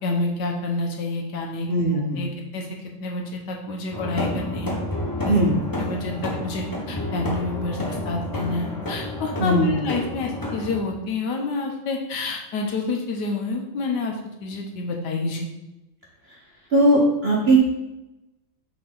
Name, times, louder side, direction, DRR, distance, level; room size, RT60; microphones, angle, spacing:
voice 1, 0.0-2.7 3.0-4.7 5.2-5.3 5.8-15.5, left 3 dB, 65° left, 1 dB, 1.3 m, -28 dB
voice 2, 1.7-2.3 5.3-5.5 9.4-9.7 16.7-17.6, right 1 dB, 45° right, -3 dB, 0.9 m, -19 dB
sound 1, 3.9-10.8, left 1 dB, 15° left, 0.7 m, -30 dB
6.1 x 4.7 x 3.9 m, 0.97 s
omnidirectional pair, 2.1 m